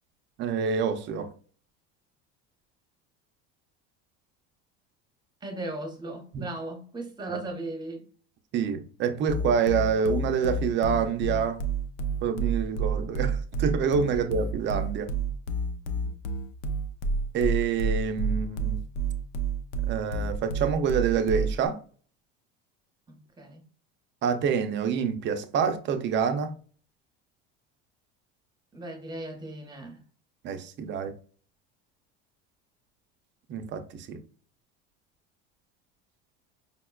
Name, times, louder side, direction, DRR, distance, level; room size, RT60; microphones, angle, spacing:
voice 1, 0.4-1.3 6.3-6.5 7.3-7.4 8.5-11.6 12.2-15.1 17.3-18.8 19.9-21.8 24.2-26.5 30.4-31.2 33.5-34.2, right 6 dB, 40° right, 0.5 m, -27 dB
voice 2, 5.4-8.1 23.1-23.6 28.7-30.0, right 2 dB, 15° right, 0.9 m, -37 dB
sound 1, 9.3-21.7, right 3 dB, 75° left, 0.6 m, -29 dB
5.2 x 2.1 x 2.3 m
supercardioid pair, 120°, 29 cm